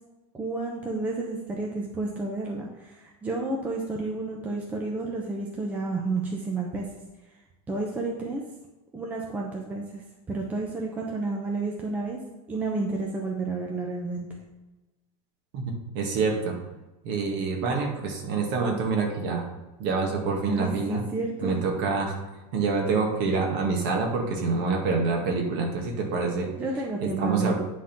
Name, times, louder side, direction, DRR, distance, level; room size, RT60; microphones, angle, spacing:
voice 1, 0.3-6.9 7.7-8.4 8.9-10.0 10.3-12.2 12.5-14.3 20.5-21.5 26.6-27.5, right 3 dB, 10° right, -1 dB, 0.7 m, -30 dB
voice 2, 15.9-16.6 17.0-19.4 19.8-21.0 21.4-22.2 22.5-26.5 27.0-27.5, right 4 dB, 45° right, 1 dB, 1.8 m, -26 dB
9.9 x 3.8 x 5.9 m, 1.1 s
supercardioid pair, 170°, 19 cm